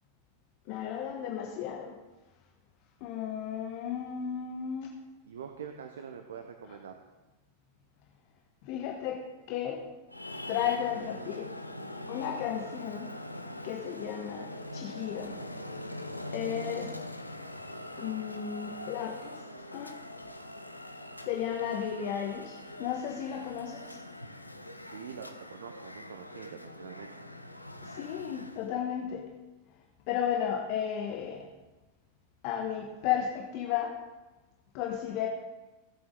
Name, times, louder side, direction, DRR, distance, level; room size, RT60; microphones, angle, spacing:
voice 1, 0.7-1.9 3.0-4.9 8.6-9.2 9.5-9.8 10.5-11.5 12.1-13.1 13.6-14.5 14.7-15.4 16.3-16.9 18.0-19.3 19.7-19.9 21.2-24.0 27.8-29.3 30.1-31.5 32.4-33.9 34.7-35.3, left 9 dB, 45° left, 1 dB, 1.3 m, -34 dB
voice 2, 5.3-7.0 24.9-27.1, right 7 dB, 65° right, 6 dB, 0.9 m, -44 dB
Traffic noise roadway noise, 10.1-28.8, left 1 dB, 85° left, 0.8 m, -43 dB
17.5 x 7.7 x 3.8 m, 1.1 s
figure-of-eight pair, 90°, 0 cm